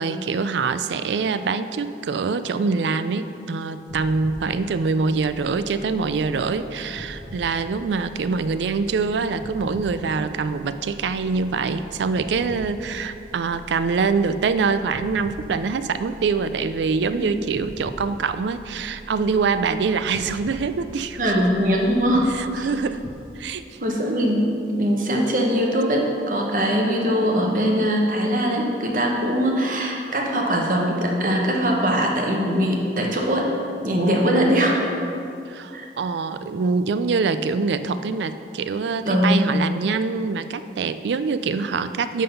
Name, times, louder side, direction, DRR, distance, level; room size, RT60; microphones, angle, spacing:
voice 1, 0.0-21.5 22.3-23.0 23.4-23.9 26.5-26.7 35.5-42.2, right 4 dB, 80° right, 12 dB, 0.4 m, -24 dB
sound 1, 3.9-23.1, right 1 dB, 50° left, 1.2 m, -42 dB
voice 2, 21.2-22.3 22.6-22.7 23.8-33.5 33.8-34.8 35.7-35.9 39.0-39.5, equal, 50° right, 0 dB, 1.0 m, -21 dB
11.5 x 3.8 x 5.3 m, 2.6 s
head